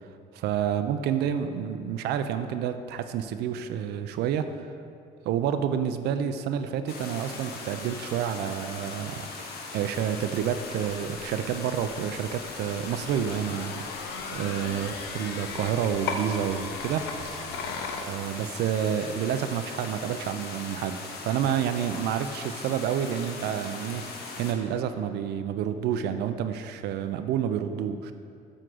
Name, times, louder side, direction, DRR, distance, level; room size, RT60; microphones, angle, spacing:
voice 1, 0.4-4.6 5.2-9.3 9.7-13.9 14.3-17.0 18.0-28.1, right 9 dB, 75° right, 9 dB, 0.5 m, -29 dB
sound 1, 6.9-24.5, left 3 dB, 70° left, 1.0 m, -40 dB
sound 2, 10.7-18.0, left 4 dB, 85° left, 0.7 m, -38 dB
7.6 x 3.7 x 6.2 m, 2.3 s
cardioid pair, 110°, 17 cm